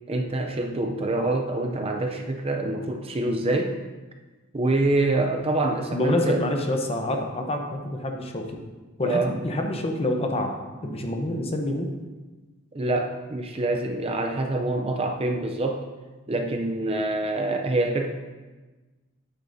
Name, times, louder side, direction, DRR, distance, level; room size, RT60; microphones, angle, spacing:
voice 1, 0.1-3.8 4.5-6.5 9.1-9.3 12.7-15.9 16.3-18.1, right 2 dB, 25° right, 4 dB, 0.5 m, -26 dB
voice 2, 5.9-8.6 9.0-11.9, left 1 dB, 30° left, 3 dB, 0.8 m, -27 dB
9.8 x 8.4 x 2.7 m, 1.3 s
head